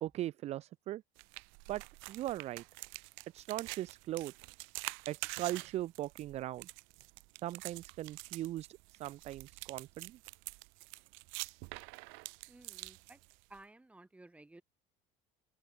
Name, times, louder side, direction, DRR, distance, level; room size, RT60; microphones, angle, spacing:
voice 1, 0.0-1.0 1.7-1.8 2.1-2.6 3.3-4.3 5.1-6.7 7.4-10.2, right 14 dB, 35° right, 0.4 m, -39 dB
sound 1, 1.2-13.6, right 30 dB, 80° right, 1.0 m, -47 dB
voice 2, 12.5-13.2 13.5-14.6, right 2 dB, 5° right, 5.0 m, -56 dB
cardioid pair, 175°, 20 cm